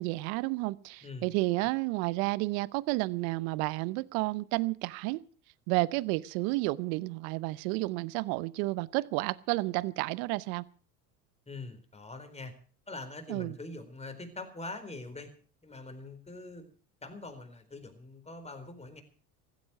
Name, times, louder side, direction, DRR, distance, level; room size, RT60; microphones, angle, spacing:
voice 1, 0.0-5.2 5.7-10.6 13.3-13.6, right 21 dB, 65° right, 20 dB, 0.8 m, -31 dB
voice 2, 11.5-12.5 12.9-15.3 15.6-16.7 17.0-19.0, left 2 dB, 15° left, 7 dB, 4.2 m, -43 dB
15.5 x 12.5 x 6.2 m, 0.41 s
hypercardioid pair, 85°, 45 cm